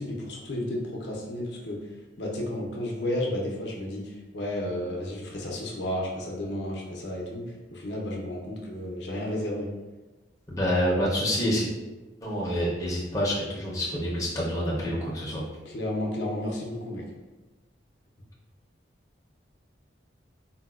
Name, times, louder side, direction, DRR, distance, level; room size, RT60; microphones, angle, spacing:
voice 1, 0.0-1.8 2.2-9.7 15.7-17.1, left 1 dB, 65° left, -1 dB, 0.5 m, -32 dB
voice 2, 10.5-11.7 12.2-15.4, equal, 15° left, -6 dB, 0.5 m, -27 dB
3.9 x 2.1 x 2.3 m, 1.2 s
head